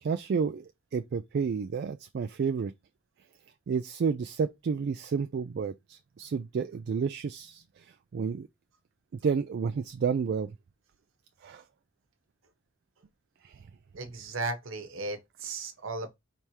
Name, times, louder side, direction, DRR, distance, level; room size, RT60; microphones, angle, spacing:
voice 1, 0.0-2.7 3.7-8.5 9.2-10.5 11.4-11.6 13.4-13.6, right 6 dB, 55° right, 0.3 m, -31 dB
voice 2, 13.9-16.1, right 3 dB, 80° right, 1.0 m, -35 dB
4.6 x 3.4 x 2.8 m
head